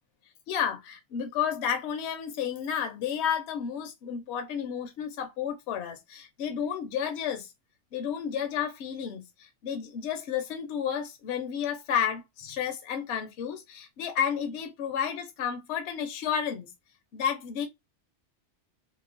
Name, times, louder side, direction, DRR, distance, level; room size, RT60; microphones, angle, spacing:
voice 1, 0.5-7.5 7.9-16.7 17.1-17.7, left 8 dB, 70° left, 0.8 m, -31 dB
2.8 x 2.1 x 2.4 m
omnidirectional pair, 1.2 m